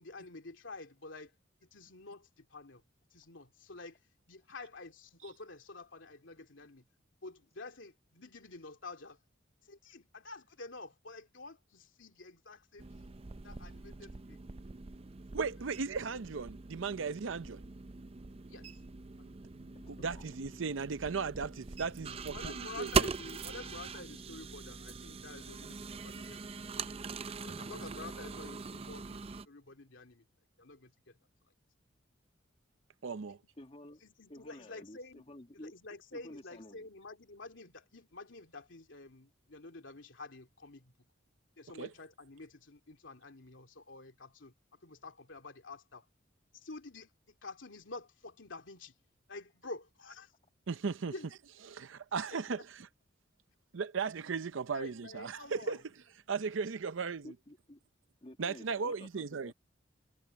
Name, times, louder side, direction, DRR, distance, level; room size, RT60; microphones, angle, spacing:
voice 1, 0.0-1.3 1.6-2.8 3.1-4.0 4.3-6.9 7.2-9.2 9.6-13.1 13.4-14.4 18.5-18.8 19.2-19.3 22.3-27.1 27.4-30.2 30.6-31.2 34.0-35.2 35.5-40.9 41.6-46.1 46.5-48.9 49.3-50.3 51.1-51.3 52.3-52.6 54.7-55.8, left 3 dB, 75° left, 2.9 m, -49 dB
sound 1, 12.8-29.5, right 4 dB, 30° right, 0.5 m, -41 dB
voice 2, 15.3-17.6 19.6-22.9 33.0-33.4 41.8-41.9 50.7-51.1 51.7-52.9 53.7-55.8 56.3-57.3 58.4-59.5, right 5 dB, 75° right, 0.6 m, -36 dB
voice 3, 19.7-20.2 33.6-34.0 34.3-35.7 36.1-36.9 57.2-57.8 58.2-59.5, left 1 dB, 30° left, 1.8 m, -51 dB
head